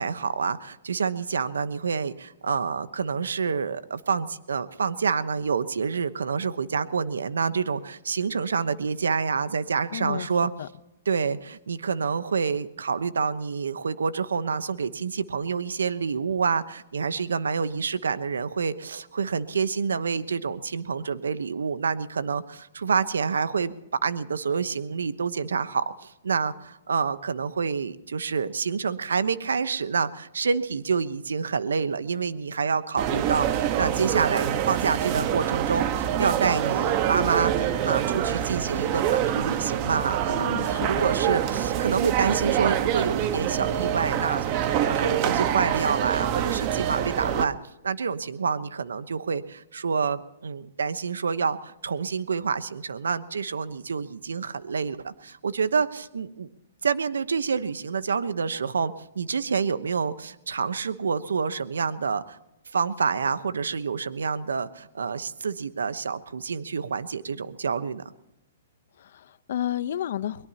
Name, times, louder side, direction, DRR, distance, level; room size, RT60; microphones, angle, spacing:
voice 1, 0.0-10.5 11.0-23.7 24.0-44.5 44.8-47.6 47.8-56.5 56.8-62.4 62.7-68.0, right 5 dB, 90° right, 13 dB, 1.0 m, -28 dB
voice 2, 9.9-10.3 10.6-10.7 40.3-41.0 69.0-70.5, left 11 dB, 65° left, 14 dB, 0.8 m, -31 dB
sound 1, 33.0-47.5, right 10 dB, 40° right, 1.3 m, -26 dB
23.0 x 21.5 x 2.9 m, 0.87 s
hypercardioid pair, 135°, 0 cm